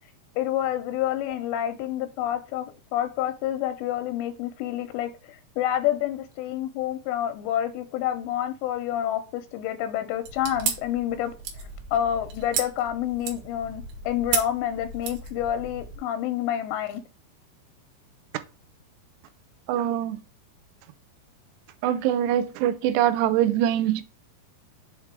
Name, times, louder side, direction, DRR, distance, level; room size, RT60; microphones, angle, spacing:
voice 1, 0.4-2.7 2.9-11.3 11.9-17.0, left 11 dB, 85° left, 3.0 m, -28 dB
sound 1, 10.2-16.0, right 7 dB, 65° right, 3.0 m, -34 dB
voice 2, 19.7-20.2 21.8-24.0, right 11 dB, 80° right, 2.8 m, -23 dB
7.3 x 3.7 x 4.6 m
omnidirectional pair, 5.1 m